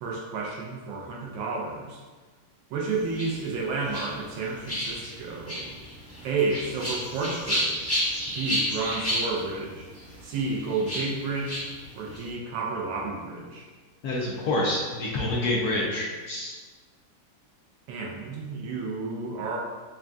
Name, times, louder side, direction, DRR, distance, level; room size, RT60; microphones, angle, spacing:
voice 1, 0.0-2.0 2.7-5.8 6.2-7.9 8.3-9.9 10.2-11.7 12.0-13.7 17.9-19.6, right 3 dB, 80° right, -2 dB, 1.5 m, -31 dB
sound 1, 2.9-12.3, equal, 15° left, 0.4 m, -32 dB
voice 2, 14.0-16.6, left 1 dB, 70° left, -4 dB, 1.0 m, -27 dB
5.9 x 2.2 x 2.5 m, 1.3 s
omnidirectional pair, 2.1 m